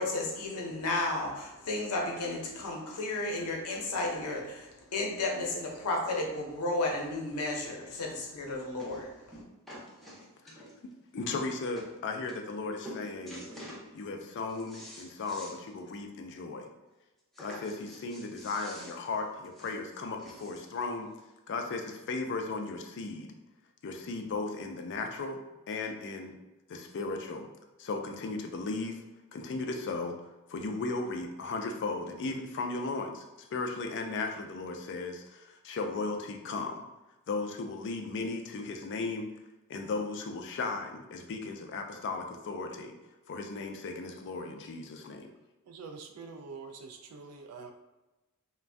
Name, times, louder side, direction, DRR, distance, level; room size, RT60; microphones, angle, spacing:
voice 1, 0.0-9.4, left 2 dB, 90° left, 0 dB, 0.7 m, -33 dB
sound 1, 8.8-9.0 9.3-10.9 11.5-11.6 11.8-11.9 12.3-12.6 12.8-13.9 14.3-15.6 15.9-16.0 16.3-16.4 17.3-20.8 21.6-21.7, equal, ahead, 0.6 m, -47 dB
voice 2, 10.5-13.5 13.9-16.7 17.4-21.1 21.5-23.3 23.8-25.4 25.7-26.3 26.7-27.5 27.8-29.0 29.3-30.2 30.5-36.8 37.3-39.3 39.7-43.0 43.3-45.3, left 3 dB, 55° left, 4 dB, 0.4 m, -36 dB
voice 3, 45.7-47.7, right 4 dB, 85° right, 4 dB, 0.3 m, -45 dB
2.5 x 2.2 x 3.3 m, 1.1 s
head